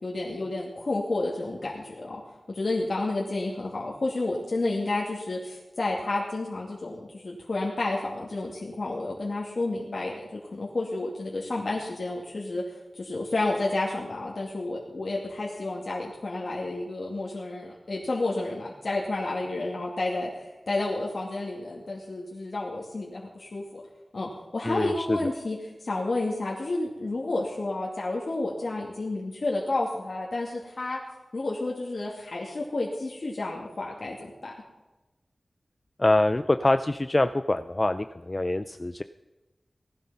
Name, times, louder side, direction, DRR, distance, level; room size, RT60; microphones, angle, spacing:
voice 1, 0.0-2.2 2.5-12.6 12.9-23.6 24.1-31.0 31.3-34.5, left 2 dB, 60° left, -3 dB, 2.5 m, -31 dB
voice 2, 24.6-25.3 36.0-39.0, left 2 dB, 30° left, 10 dB, 0.5 m, -25 dB
18.0 x 12.0 x 5.7 m, 1.1 s
wide cardioid pair, 85°, 0 cm